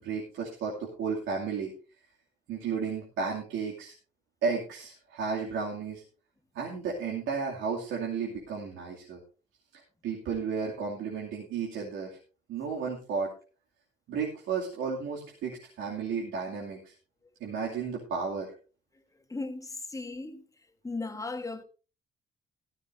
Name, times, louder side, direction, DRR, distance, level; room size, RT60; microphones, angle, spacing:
voice 1, 0.0-1.7 2.5-3.9 4.4-6.0 6.5-9.2 9.7-12.2 12.5-13.3 14.1-16.9 17.4-18.5, right 5 dB, 85° right, 2.6 m, -33 dB
voice 2, 18.9-20.4 20.8-21.6, left 3 dB, 15° left, 1.4 m, -37 dB
14.5 x 13.5 x 2.7 m
cardioid pair, 90°, 20 cm